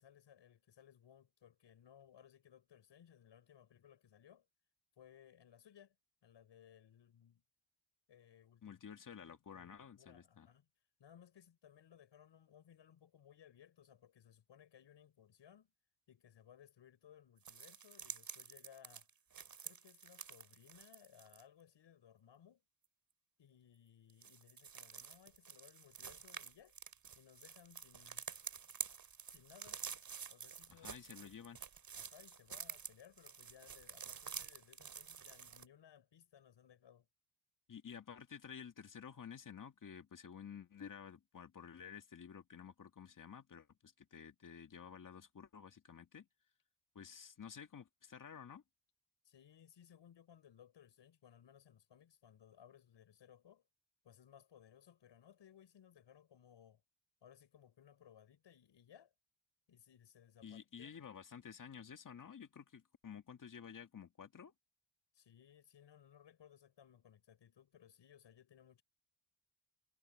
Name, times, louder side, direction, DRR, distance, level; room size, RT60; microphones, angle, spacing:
voice 1, 0.0-4.5 5.0-6.0 6.2-7.4 8.1-8.8 9.2-10.7 11.0-15.7 16.1-19.1 19.6-22.6 23.4-26.8 27.1-28.3 29.3-29.8 30.3-31.3 32.0-37.1 49.2-53.7 54.0-56.8 57.2-59.1 59.7-60.9 65.1-68.8, left 9 dB, 60° left, 6.4 m, -63 dB
voice 2, 8.6-10.5 30.7-31.6 37.7-46.3 47.0-48.6 60.4-64.5, left 7 dB, 40° left, 2.0 m, -52 dB
sound 1, 17.5-21.4 24.1-35.7, right 7 dB, 45° right, 3.5 m, -49 dB
cardioid pair, 85°, 48 cm